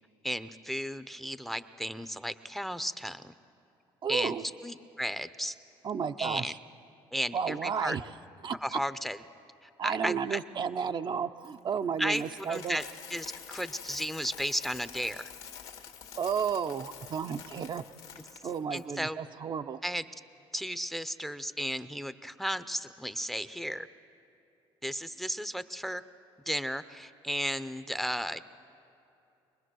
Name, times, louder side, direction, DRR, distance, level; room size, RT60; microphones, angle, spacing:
voice 1, 0.2-3.3 4.1-4.4 4.6-5.5 6.2-6.5 7.1-8.0 8.6-9.2 9.6-10.4 12.0-12.8 13.1-15.3 18.7-19.2 19.8-20.0 20.5-23.9 24.8-26.0 26.5-28.4, equal, ahead, 13 dB, 0.7 m, -34 dB
voice 2, 4.0-4.4 5.8-6.6 7.3-8.1 8.4-8.8 9.8-12.8 16.2-17.8 18.4-19.8, right 6 dB, 45° right, 7 dB, 0.7 m, -32 dB
Coin (dropping), 11.4-18.8, left 7 dB, 70° left, 1.9 m, -47 dB
24.5 x 20.0 x 6.3 m, 2.7 s
supercardioid pair, 75°, 11 cm